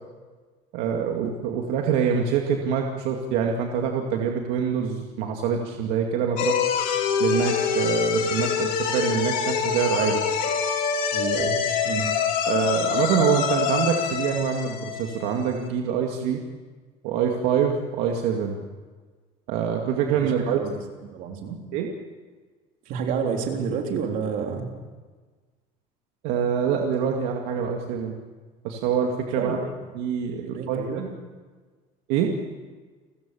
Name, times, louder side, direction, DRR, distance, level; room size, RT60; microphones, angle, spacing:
voice 1, 0.7-6.5 7.2-10.2 12.4-16.4 17.0-18.6 19.5-20.6 21.7-21.9 26.2-28.1 28.6-29.6 29.9-31.0 32.1-32.3, right 7 dB, 80° right, 2 dB, 2.2 m, -25 dB
sound 1, 6.4-15.6, left 7 dB, 60° left, 2.9 m, -25 dB
voice 2, 11.1-11.6 11.8-12.1 20.2-20.8 21.1-21.6 22.9-24.7 29.4-29.7 30.4-31.1, right 6 dB, 60° right, 2 dB, 3.5 m, -29 dB
29.5 x 15.0 x 7.0 m, 1.4 s
cardioid pair, 165°, 16 cm